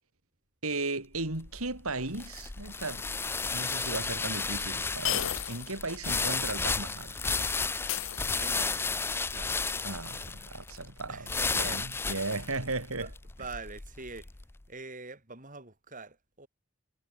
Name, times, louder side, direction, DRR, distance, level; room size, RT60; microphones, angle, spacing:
voice 1, 0.6-3.1 3.5-7.2 9.8-13.1, right 2 dB, 75° right, 4.8 m, -36 dB
sound 1, 1.1-14.4, left 4 dB, 10° left, 0.3 m, -33 dB
sound 2, 3.6-3.7 5.0-5.8 6.1-6.2 7.9-8.8, left 13 dB, 60° left, 0.5 m, -34 dB
voice 2, 8.4-9.6 11.1-12.1 13.0-13.1 13.4-14.3 14.7-16.5, right 3 dB, 35° right, 6.0 m, -45 dB
head